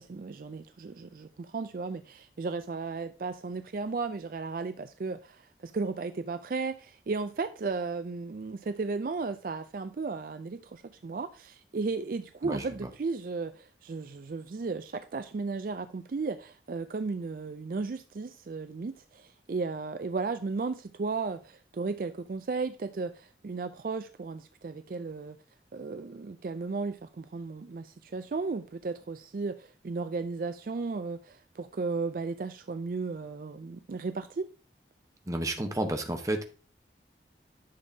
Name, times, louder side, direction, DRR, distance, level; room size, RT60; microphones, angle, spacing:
voice 1, 0.0-25.4 25.7-34.5, right 4 dB, 50° right, 0.4 m, -35 dB
voice 2, 35.3-36.4, right 1 dB, 20° right, 1.0 m, -31 dB
10.5 x 6.3 x 2.7 m
head